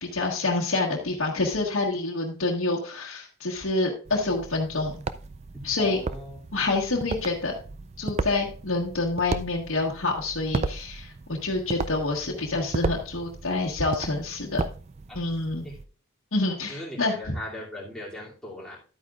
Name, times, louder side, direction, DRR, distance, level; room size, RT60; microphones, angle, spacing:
voice 1, 0.0-4.9 5.6-6.0 6.5-7.5 8.0-14.6 15.1-15.6 16.3-17.3, left 3 dB, 75° left, -2 dB, 1.4 m, -27 dB
sound 1, 4.0-15.8, right 3 dB, 30° right, 0.3 m, -35 dB
voice 2, 5.8-6.4 15.1-15.2 15.6-15.8 16.7-18.8, left 1 dB, 5° left, -6 dB, 2.6 m, -39 dB
11.5 x 8.7 x 2.4 m, 0.38 s
head